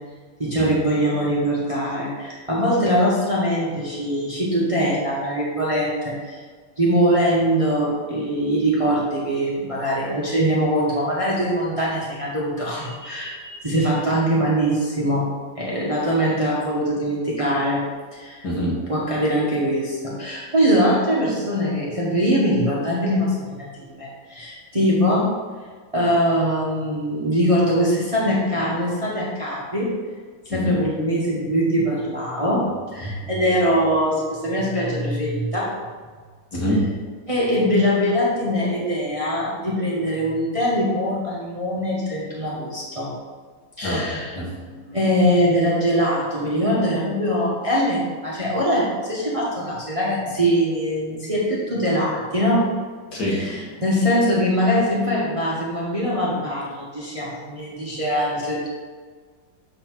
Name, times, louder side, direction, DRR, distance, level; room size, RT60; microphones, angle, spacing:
voice 1, 0.4-6.4 6.8-15.3 15.6-17.8 18.1-18.5 18.9-23.7 24.0-25.3 25.9-29.9 30.4-35.7 37.3-43.1 43.8-44.4 44.9-52.7 53.3-58.7, equal, 25° right, -6 dB, 1.0 m, -22 dB
voice 2, 18.4-18.8 30.5-30.6 36.5-36.8 43.8-44.8 53.1-53.7, equal, 60° left, -5 dB, 2.3 m, -26 dB
7.6 x 4.1 x 4.5 m, 1.5 s
omnidirectional pair, 2.0 m